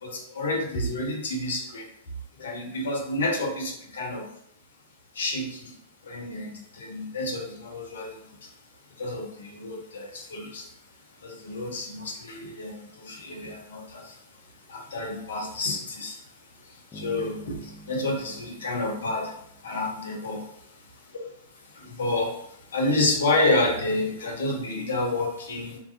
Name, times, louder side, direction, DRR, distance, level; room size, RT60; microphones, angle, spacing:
voice 1, 0.0-1.9 2.4-4.3 5.1-5.8 6.0-8.5 9.0-10.7 11.2-14.2 14.7-16.2 16.6-20.4 21.1-21.2 21.5-25.8, left 2 dB, 65° left, 1 dB, 0.5 m, -29 dB
sound 1, 16.9-19.9, right 2 dB, 20° left, 0.6 m, -46 dB
2.3 x 2.2 x 2.5 m, 0.73 s
figure-of-eight pair, 100°, 0 cm